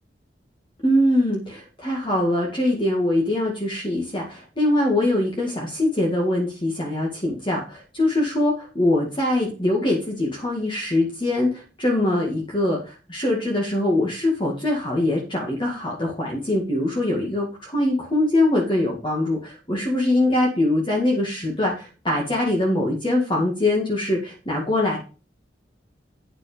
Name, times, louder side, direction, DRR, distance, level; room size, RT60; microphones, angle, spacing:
voice 1, 0.8-25.0, left 1 dB, 25° left, -1 dB, 2.0 m, -23 dB
9.3 x 6.0 x 5.1 m, 0.34 s
head